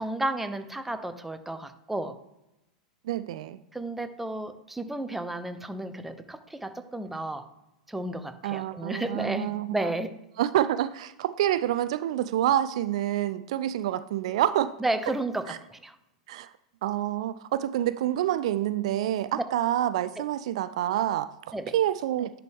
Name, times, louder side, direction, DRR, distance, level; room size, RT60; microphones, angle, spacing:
voice 1, 0.0-2.2 3.7-7.5 7.9-10.1 14.8-15.9 19.3-19.4 21.5-21.7, right 1 dB, 5° right, 9 dB, 0.7 m, -32 dB
voice 2, 3.1-3.6 8.4-9.9 10.4-14.7 15.5-15.6 16.3-16.5 16.8-22.3, right 12 dB, 65° right, 15 dB, 0.3 m, -27 dB
10.5 x 4.5 x 3.5 m, 0.92 s
hypercardioid pair, 95°, 4 cm